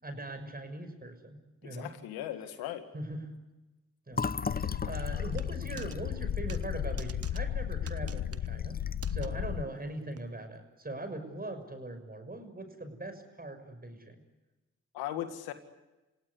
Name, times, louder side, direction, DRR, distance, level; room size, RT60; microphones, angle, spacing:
voice 1, 0.0-1.9 2.9-3.2 4.1-8.8 9.1-14.2, right 2 dB, 25° right, 7 dB, 6.4 m, -41 dB
voice 2, 1.6-2.8 9.3-9.4 14.9-15.5, left 12 dB, 85° left, 8 dB, 2.0 m, -38 dB
Fill (with liquid), 4.1-7.8 8.1-8.3 8.6-9.2, left 5 dB, 25° left, 0.9 m, -38 dB
sound 1, 4.4-9.6, left 10 dB, 65° left, 1.1 m, -34 dB
sound 2, 5.3-6.0 6.5-6.7 7.0-7.4 7.9-8.5 9.0-9.3 10.2-10.3, right 7 dB, 40° right, 1.1 m, -47 dB
28.0 x 17.0 x 9.7 m, 1.1 s
hypercardioid pair, 45°, 36 cm